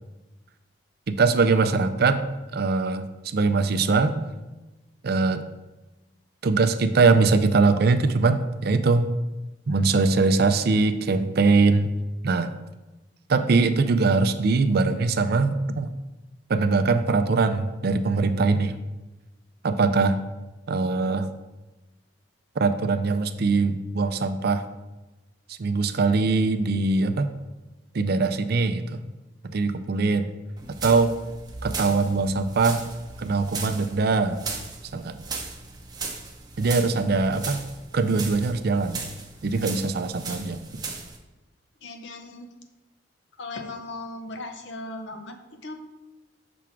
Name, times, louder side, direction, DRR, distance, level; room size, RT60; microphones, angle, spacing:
voice 1, 1.1-2.2 2.5-3.1 3.3-4.2 5.0-5.4 6.4-9.1 9.7-11.9 12.2-12.5 13.3-15.9 16.5-18.8 19.6-20.2 20.7-21.3 22.6-24.6 25.5-27.3 27.9-29.0 29.4-30.3 30.8-31.1 31.6-32.8 33.2-34.4 34.9-35.1 36.6-37.6 37.9-39.0 39.4-40.6, right 3 dB, 55° right, 10 dB, 0.4 m, -22 dB
sound 1, 30.6-41.2, right 4 dB, 20° right, 0.8 m, -37 dB
voice 2, 41.8-42.5 43.4-45.8, left 2 dB, 70° left, 6 dB, 0.7 m, -37 dB
6.0 x 3.6 x 5.9 m, 1.1 s
head